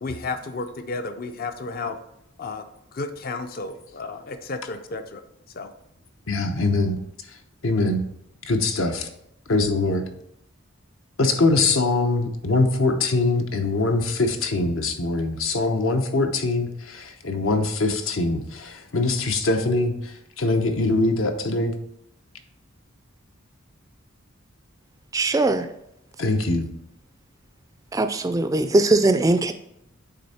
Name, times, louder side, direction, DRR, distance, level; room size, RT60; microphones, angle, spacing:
voice 1, 0.0-2.0 2.4-2.6 2.9-5.2 5.5-5.7, left 3 dB, 45° left, 8 dB, 0.5 m, -32 dB
voice 2, 6.3-7.0 7.6-8.0 8.4-9.1 9.5-10.1 11.2-21.8 26.2-26.7, left 2 dB, 70° left, 6 dB, 0.8 m, -23 dB
voice 3, 25.1-25.7 27.9-29.5, right 2 dB, 15° right, 9 dB, 0.3 m, -20 dB
8.7 x 3.5 x 4.2 m, 0.79 s
head